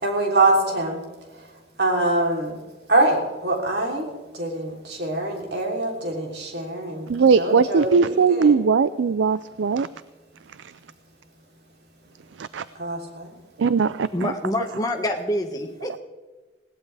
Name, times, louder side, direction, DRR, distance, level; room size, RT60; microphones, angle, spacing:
voice 1, 0.0-1.0 1.8-2.6 2.9-4.1 4.3-7.1 7.4-8.5 12.8-13.3, right 2 dB, 65° right, 0 dB, 3.3 m, -24 dB
voice 2, 7.1-9.9 12.5-12.6 13.6-14.1, right 5 dB, 85° right, 15 dB, 0.4 m, -19 dB
voice 3, 14.1-16.0, left 1 dB, 20° left, 3 dB, 1.5 m, -26 dB
20.0 x 17.5 x 3.4 m, 1.2 s
head